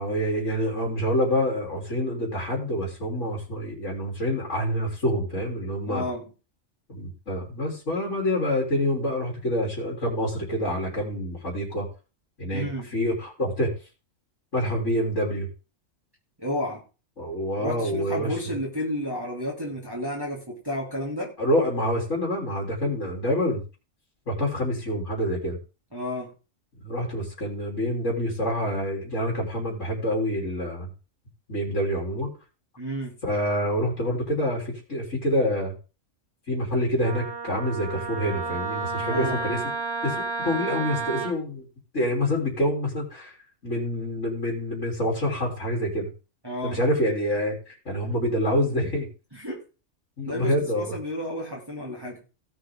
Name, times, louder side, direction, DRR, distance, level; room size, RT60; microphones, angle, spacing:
voice 1, 0.0-6.1 6.9-11.9 12.4-13.8 14.5-15.5 17.2-18.4 21.4-23.6 24.3-25.6 26.8-30.9 31.5-32.3 33.2-35.7 36.5-39.6 40.0-41.7 41.9-43.4 43.6-46.1 46.6-49.1 50.2-50.9, equal, 70° left, -2 dB, 4.2 m, -27 dB
voice 2, 5.9-6.2 12.5-12.9 16.4-16.8 17.6-21.3 25.9-26.3 32.8-33.1 39.1-39.4 46.4-46.8 49.3-49.6 50.2-52.2, left 1 dB, 15° right, -4 dB, 3.2 m, -31 dB
Wind instrument woodwind instrument, 37.0-41.3, right 4 dB, 55° right, 2.9 m, -31 dB
17.5 x 7.9 x 3.8 m, 0.33 s
omnidirectional pair, 1.3 m